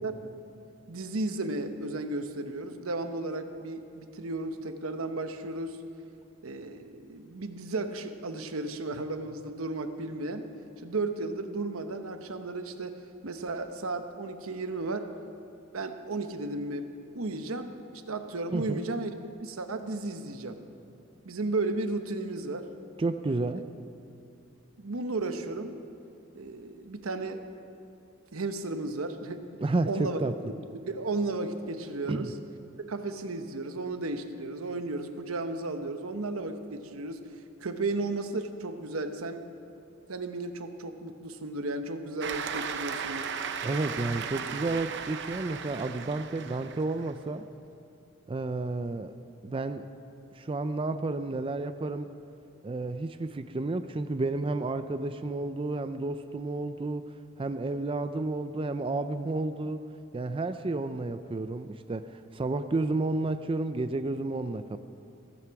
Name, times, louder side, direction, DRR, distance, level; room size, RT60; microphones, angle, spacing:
voice 1, 0.9-5.8 6.4-10.5 10.8-15.1 15.7-17.8 18.1-19.2 19.4-20.6 21.2-22.7 23.5-23.6 24.8-25.8 26.3-27.5 28.3-29.5 29.8-30.2 30.9-32.3 32.8-37.2 37.6-39.4 40.1-43.3, right 2 dB, 85° right, 8 dB, 1.0 m, -34 dB
voice 2, 18.5-18.8 23.0-23.7 29.6-30.4 32.1-32.3 43.6-47.5 48.3-49.1 49.4-49.9 50.3-52.1 52.6-57.1 57.4-59.8 60.1-64.8, right 2 dB, 25° right, 10 dB, 0.4 m, -31 dB
Cheering / Applause, 42.2-47.1, right 6 dB, 55° right, 0.7 m, -36 dB
16.0 x 15.0 x 4.7 m, 2.6 s
head